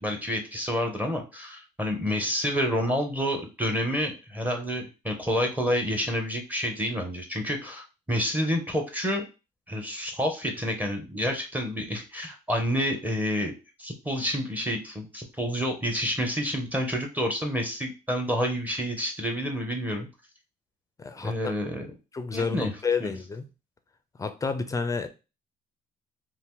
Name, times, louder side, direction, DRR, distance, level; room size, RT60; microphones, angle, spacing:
voice 1, 0.0-9.3 9.7-13.5 13.8-20.1 21.2-21.9 22.3-22.7 23.0-23.1, equal, 10° right, 0.8 m, -29 dB
voice 2, 21.0-21.5 22.1-23.5 24.2-25.1, left 5 dB, 20° left, 0.4 m, -30 dB
2.8 x 2.5 x 3.6 m
cardioid pair, 110°, 17 cm